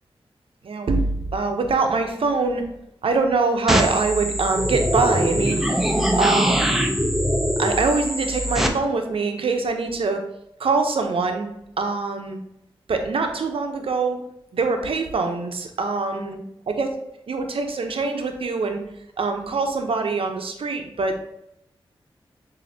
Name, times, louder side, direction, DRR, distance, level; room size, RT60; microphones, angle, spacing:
voice 1, 0.6-2.7 3.0-5.7 6.2-6.9 7.6-10.2 10.6-11.5 11.8-12.4 12.9-14.2 14.5-16.4 16.7-17.0 17.3-18.8 19.2-21.2, right 4 dB, 70° right, 4 dB, 0.7 m, -24 dB
sound 1, 3.7-8.7, equal, 5° right, 0.7 m, -22 dB
7.1 x 2.7 x 2.7 m, 0.79 s
cardioid pair, 45°, 10 cm